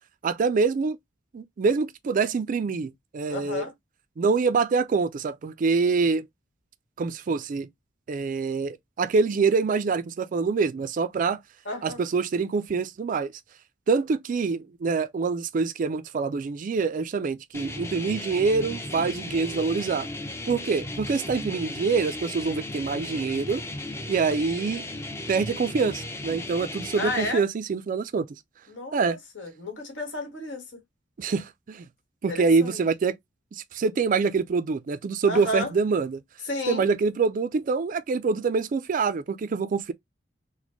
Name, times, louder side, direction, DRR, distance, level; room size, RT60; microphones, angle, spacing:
voice 1, 0.2-1.0 1.3-3.7 4.2-6.3 7.0-7.7 8.1-11.4 11.8-13.3 13.9-20.1 20.5-23.6 24.1-24.9 25.3-28.3 28.9-29.2 31.2-31.8 32.2-33.2 33.5-36.2 36.7-39.9, right 4 dB, 45° right, 0.3 m, -25 dB
voice 2, 3.3-3.7 11.6-12.0 24.2-24.3 27.0-27.4 28.7-30.8 32.3-32.8 35.2-35.7 36.4-36.9, left 1 dB, 75° left, 1.6 m, -32 dB
sound 1, 17.5-27.3, left 2 dB, 15° left, 0.5 m, -36 dB
4.0 x 2.2 x 3.0 m
head